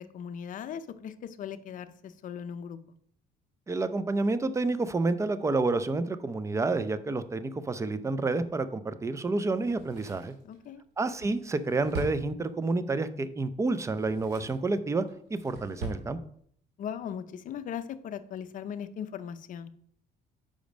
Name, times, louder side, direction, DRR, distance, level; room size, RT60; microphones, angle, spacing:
voice 1, 0.0-2.8 10.4-10.8 16.8-19.7, left 8 dB, 50° left, 11 dB, 0.6 m, -38 dB
voice 2, 3.7-10.3 11.0-15.1 15.3-16.2, right 3 dB, 15° right, 13 dB, 0.5 m, -29 dB
Drawer open or close, 9.6-12.9 13.8-14.7 15.1-16.1 16.4-16.5, right 3 dB, 90° right, 2.0 m, -41 dB
5.2 x 5.1 x 5.1 m, 0.63 s
cardioid pair, 110°, 17 cm